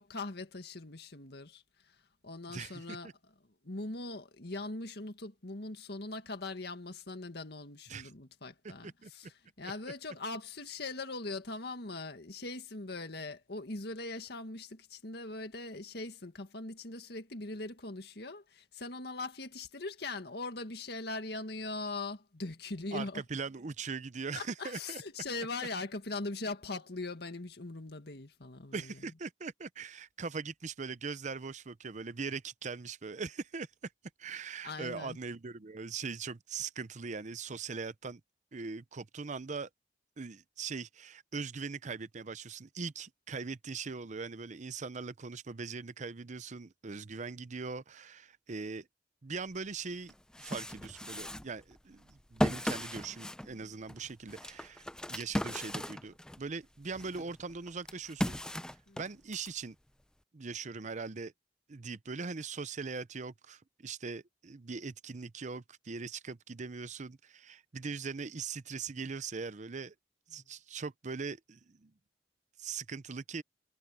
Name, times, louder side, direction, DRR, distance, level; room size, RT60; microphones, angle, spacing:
voice 1, 0.0-1.6 2.2-3.1 3.6-9.3 9.6-23.2 24.4-29.0 34.6-35.2 53.6-53.7 58.9-59.0, left 3 dB, 65° left, 2.0 m, -41 dB
voice 2, 2.5-3.1 7.9-8.1 8.6-9.1 22.9-25.0 28.7-33.7 34.2-38.2 38.5-39.7 40.2-48.9 49.2-58.4 59.0-59.8 60.3-61.3 61.7-69.9 70.3-71.9 72.6-73.4, right 4 dB, 45° right, 0.7 m, -41 dB
sound 1, 49.6-49.7 50.1-56.5 56.9-59.5, equal, 5° left, 0.7 m, -37 dB
head